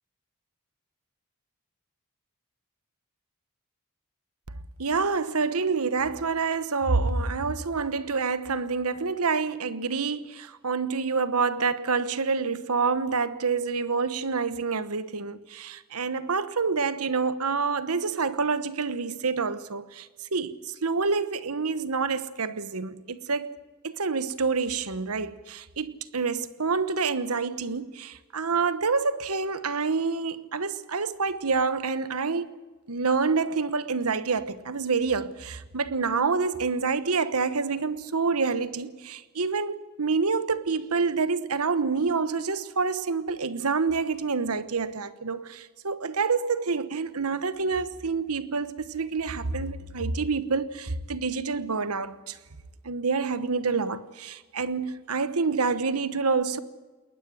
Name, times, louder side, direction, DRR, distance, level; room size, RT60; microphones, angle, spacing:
voice 1, 4.8-23.5 23.8-32.6 32.9-52.4 52.8-56.6, right 4 dB, 80° right, 1.2 m, -27 dB
21.0 x 19.5 x 7.8 m
head